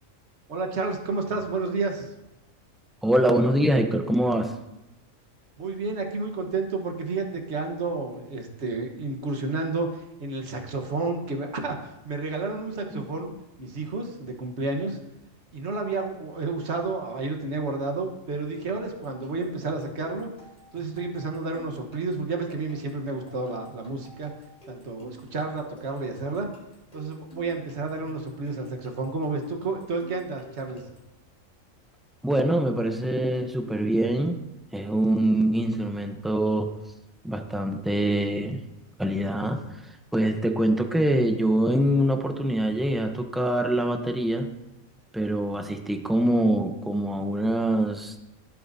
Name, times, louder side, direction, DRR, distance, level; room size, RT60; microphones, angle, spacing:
voice 1, 0.5-2.1 5.6-13.3 13.6-15.0 15.5-20.3 20.7-24.3 24.7-26.5 26.9-30.8, right 3 dB, 55° right, 2 dB, 1.5 m, -31 dB
voice 2, 3.0-4.6 12.9-13.0 32.2-34.4 34.7-36.7 37.2-38.6 39.0-39.6 40.1-44.5 45.1-48.1, right 1 dB, ahead, 5 dB, 0.5 m, -24 dB
sound 1, 18.8-31.2, right 2 dB, 30° left, 3.6 m, -50 dB
17.0 x 7.7 x 2.7 m, 0.92 s
omnidirectional pair, 1.4 m